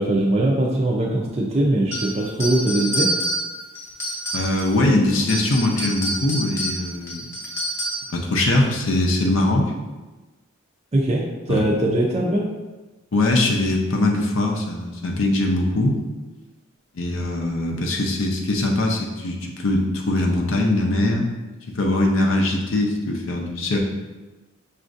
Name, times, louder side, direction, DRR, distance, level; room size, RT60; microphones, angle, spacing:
voice 1, 0.0-3.1 10.9-12.5, right 1 dB, 30° right, -3 dB, 0.4 m, -21 dB
sound 1, 1.9-4.8 5.2-8.2, right 1 dB, 15° left, 0.7 m, -28 dB
voice 2, 4.3-7.3 8.1-9.7 11.5-11.6 13.1-16.0 17.0-21.3 21.7-23.8, left 2 dB, 65° left, 0 dB, 0.6 m, -21 dB
6.0 x 2.5 x 2.5 m, 1.2 s
head